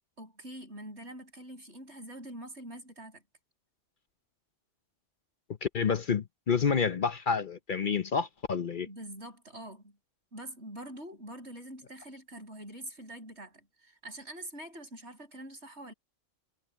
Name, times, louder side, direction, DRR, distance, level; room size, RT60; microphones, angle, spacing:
voice 1, 0.2-3.2 8.9-10.0 10.3-15.9, right 1 dB, 75° right, 7.9 m, -45 dB
voice 2, 5.6-8.9, left 6 dB, 50° left, 0.9 m, -29 dB
omnidirectional pair, 1.2 m